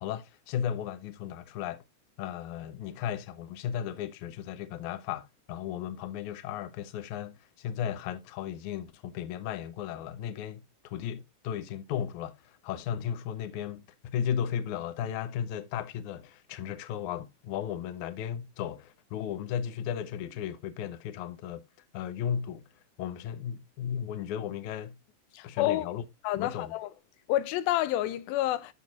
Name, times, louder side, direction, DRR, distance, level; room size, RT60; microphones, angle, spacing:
voice 1, 0.0-1.8 2.2-21.6 21.9-22.7 23.0-25.0 25.4-26.0 26.4-26.7, left 9 dB, 70° left, 2.0 m, -35 dB
voice 2, 25.3-25.9 26.2-26.9 27.3-28.7, left 14 dB, 85° left, 2.4 m, -29 dB
13.5 x 4.7 x 2.4 m
omnidirectional pair, 4.2 m